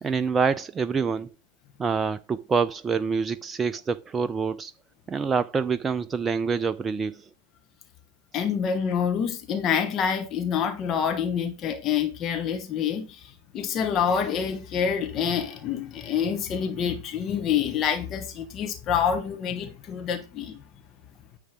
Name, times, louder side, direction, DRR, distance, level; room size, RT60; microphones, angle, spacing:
voice 1, 0.0-1.3 1.8-4.7 5.1-7.2, right 5 dB, 20° right, 0.4 m, -26 dB
voice 2, 8.3-20.6, left 7 dB, 30° left, 1.3 m, -27 dB
9.7 x 6.8 x 3.7 m
figure-of-eight pair, 90°, 0 cm